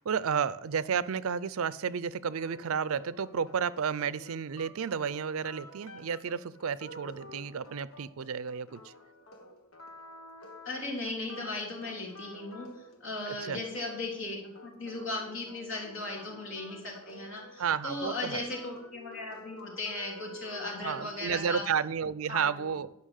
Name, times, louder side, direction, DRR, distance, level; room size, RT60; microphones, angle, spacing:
voice 1, 0.0-8.9 13.3-13.6 17.6-18.4 20.8-22.9, right 7 dB, 75° right, 17 dB, 0.5 m, -32 dB
sound 1, 2.4-21.5, left 1 dB, 90° left, 1.5 m, -50 dB
voice 2, 10.7-12.7 13.0-21.6 22.3-22.8, left 2 dB, 60° left, -1 dB, 3.4 m, -37 dB
11.5 x 5.9 x 6.5 m, 0.80 s
head